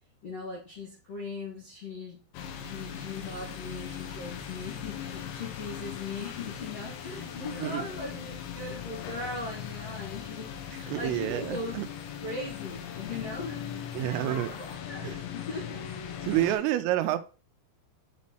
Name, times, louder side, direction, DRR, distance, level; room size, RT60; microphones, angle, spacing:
voice 1, 0.2-2.2 2.6-11.8 12.2-15.8 16.4-16.6, left 2 dB, 65° left, 1.6 m, -39 dB
sound 1, 2.3-16.6, left 8 dB, 85° left, 3.9 m, -39 dB
voice 2, 10.7-11.9 13.9-14.5 15.0-15.2 16.2-17.2, right 14 dB, 85° right, 3.2 m, -29 dB
10.5 x 4.2 x 3.0 m
omnidirectional pair, 5.9 m